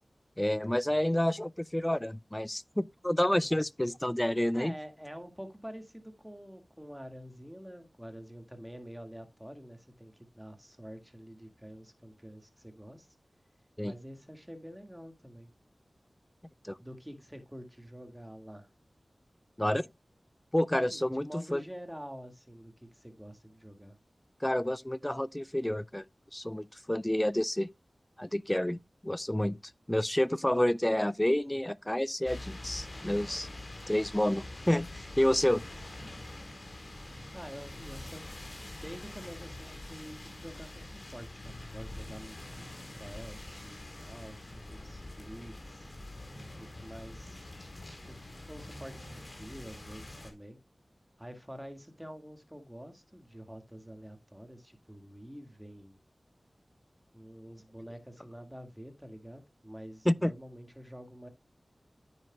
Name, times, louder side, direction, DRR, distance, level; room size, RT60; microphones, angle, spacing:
voice 1, 0.4-4.7 13.8-13.9 16.6-16.8 19.6-19.9 20.5-21.6 24.4-26.0 26.3-27.7 28.2-29.6 29.9-33.5 33.9-35.6 60.1-60.3, left 1 dB, 15° left, 0.4 m, -29 dB
voice 2, 4.5-13.2 13.8-15.5 16.8-18.7 20.8-24.0 37.3-38.3 38.8-42.7 42.9-45.9 46.6-47.5 48.1-48.2 48.5-50.6 51.2-56.0 57.1-61.3, equal, 5° right, 1.9 m, -47 dB
sound 1, 32.2-50.3, left 1 dB, 50° left, 3.6 m, -45 dB
10.0 x 8.8 x 2.3 m
wide cardioid pair, 50°, 0 cm